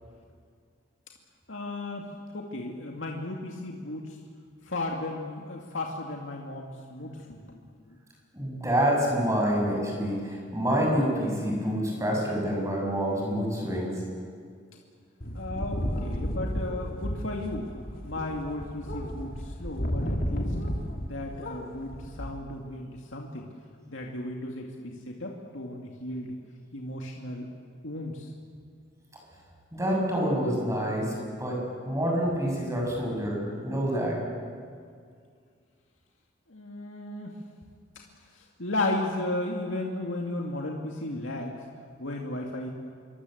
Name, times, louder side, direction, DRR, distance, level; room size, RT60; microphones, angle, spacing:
voice 1, 1.5-2.1 2.3-4.2 4.6-7.6 7.9-8.0 15.3-17.7 18.0-20.6 21.0-23.5 23.9-26.3 26.7-27.5 27.8-28.3 36.5-37.4 38.3-41.6 42.0-42.7, left 2 dB, 75° left, 0 dB, 2.3 m, -35 dB
voice 2, 8.3-13.9 29.7-34.2, equal, 15° right, -1 dB, 7.2 m, -27 dB
sound 1, 15.2-21.1 21.4-22.3, equal, 50° left, 2.6 m, -32 dB
27.0 x 24.0 x 7.9 m, 2.1 s
head